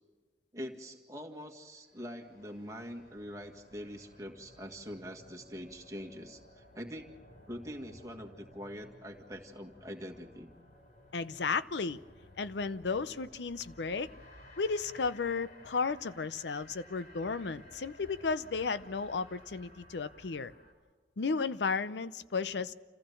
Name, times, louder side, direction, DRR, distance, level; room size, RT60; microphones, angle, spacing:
voice 1, 0.5-7.1 7.5-10.5, equal, 20° right, 1.9 m, -44 dB
sound 1, 1.7-20.7, left 1 dB, 55° left, 4.3 m, -56 dB
voice 2, 11.1-12.0 12.4-14.1 14.6-20.5 21.2-22.7, left 4 dB, 80° left, 0.6 m, -34 dB
28.0 x 15.5 x 6.9 m
head